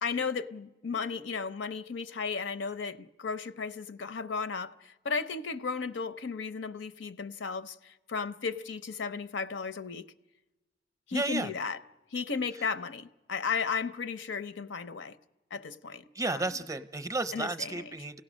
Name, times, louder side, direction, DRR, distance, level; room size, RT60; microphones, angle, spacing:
voice 1, 0.0-10.1 11.1-11.8 12.1-15.2 15.5-16.0 16.3-16.4 17.3-17.9, left 5 dB, 75° left, 0.6 m, -35 dB
voice 2, 11.1-11.5 16.1-18.2, right 2 dB, 20° right, 0.6 m, -32 dB
29.0 x 17.0 x 6.3 m
head